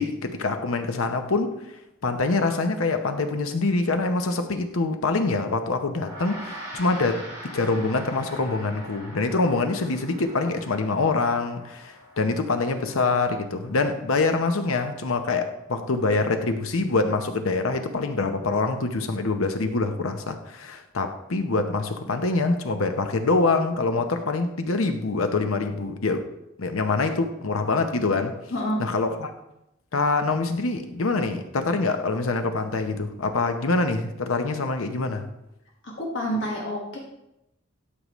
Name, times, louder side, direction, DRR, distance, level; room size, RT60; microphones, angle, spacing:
voice 1, 0.0-1.5 2.0-7.2 7.5-26.3 26.6-28.3 28.8-29.3 29.9-35.3, left 3 dB, 85° left, 0.9 m, -25 dB
Gong, 5.9-15.6, equal, 15° right, 2.8 m, -43 dB
voice 2, 28.5-28.8 35.8-37.0, equal, 60° left, 1.6 m, -28 dB
11.5 x 5.4 x 3.1 m
head